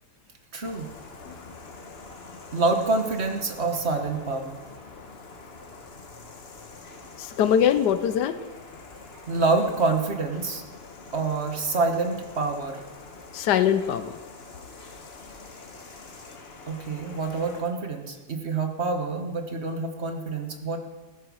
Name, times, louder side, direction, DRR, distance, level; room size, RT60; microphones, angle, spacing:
voice 1, 0.5-0.9 2.5-4.6 9.1-10.6 11.1-12.8 16.7-20.8, right 3 dB, 40° right, 4 dB, 1.6 m, -27 dB
sound 1, 0.6-17.6, left 3 dB, 40° left, 1.4 m, -45 dB
voice 2, 7.2-8.4 13.3-14.2, left 9 dB, 80° left, 11 dB, 1.3 m, -22 dB
15.0 x 8.8 x 6.3 m, 1.2 s
omnidirectional pair, 1.8 m